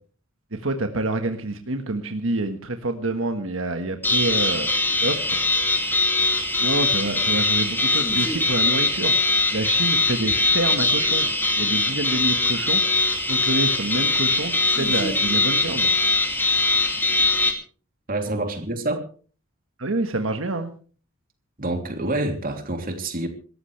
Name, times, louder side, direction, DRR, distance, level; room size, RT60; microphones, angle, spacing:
voice 1, 0.5-4.7 5.0-5.4 6.6-11.3 11.6-13.0 13.3-15.9 19.8-20.7, right 2 dB, 80° right, 6 dB, 1.5 m, -27 dB
nuke alert tone, 4.0-17.5, left 2 dB, 10° left, 2.6 m, -21 dB
voice 2, 18.1-19.0 21.6-23.3, right 2 dB, 45° right, 5 dB, 3.2 m, -27 dB
26.5 x 14.0 x 3.3 m, 0.40 s
head